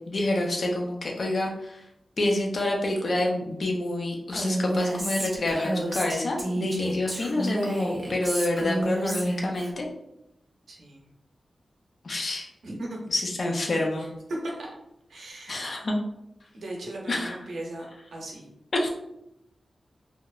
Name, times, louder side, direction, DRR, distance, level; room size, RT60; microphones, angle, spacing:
voice 1, 0.1-1.8 2.2-9.9 12.0-12.5 13.1-14.1 15.5-16.0 17.1-17.3 18.7-18.9, left 1 dB, 50° left, 0 dB, 0.5 m, -27 dB
Female speech woman speaking, 4.3-9.7, right 1 dB, 10° right, 0.5 m, -30 dB
voice 2, 10.7-11.1 12.6-13.0 14.0-14.1 14.4-14.7 15.1-15.7 16.5-18.5, right 1 dB, 85° right, -1 dB, 0.6 m, -38 dB
2.9 x 2.1 x 2.3 m, 0.81 s
wide cardioid pair, 170°, 0 cm